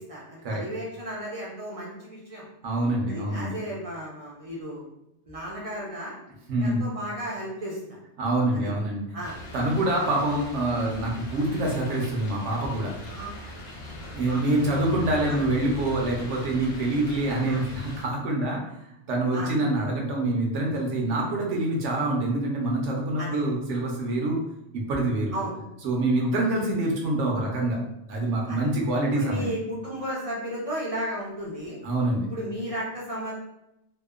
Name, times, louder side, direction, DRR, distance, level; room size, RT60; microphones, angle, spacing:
voice 1, 0.0-2.4 3.1-4.8 5.3-6.1 6.6-8.0 8.5-8.7 9.1-9.4 9.9-10.1 13.1-13.3 13.8-13.9 14.3-14.4 15.2-15.4 17.4-17.6 19.3-19.5 23.2-23.5 25.3-25.5 26.2-26.3 28.5-28.6 29.1-31.8 32.3-33.3, equal, 45° right, -5 dB, 0.4 m, -34 dB
voice 2, 2.6-3.6 6.5-6.9 8.2-9.0 9.5-12.9 14.1-18.6 19.1-24.4 24.7-25.3 25.8-27.8 28.1-29.5 31.8-32.3, right 1 dB, 75° right, -1 dB, 0.9 m, -26 dB
sound 1, 9.2-18.0, equal, 70° left, 0.9 m, -40 dB
2.7 x 2.0 x 2.3 m, 0.85 s
omnidirectional pair, 1.3 m